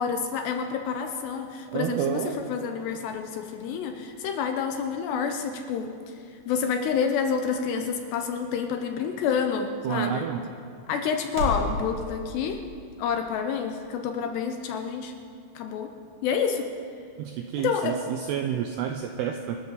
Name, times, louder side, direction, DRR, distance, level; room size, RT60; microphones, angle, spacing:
voice 1, 0.0-2.2 2.5-6.2 6.5-10.2 10.9-12.6 13.0-15.1 15.6-15.9 16.2-16.7 17.6-18.0, left 6 dB, 75° left, 5 dB, 2.6 m, -28 dB
voice 2, 1.7-2.4 9.8-10.4 17.2-19.6, right 9 dB, 85° right, 5 dB, 2.3 m, -29 dB
sound 1, 5.5-11.7, left 1 dB, 50° right, 3.6 m, -39 dB
27.0 x 13.0 x 4.0 m, 2.4 s
omnidirectional pair, 5.5 m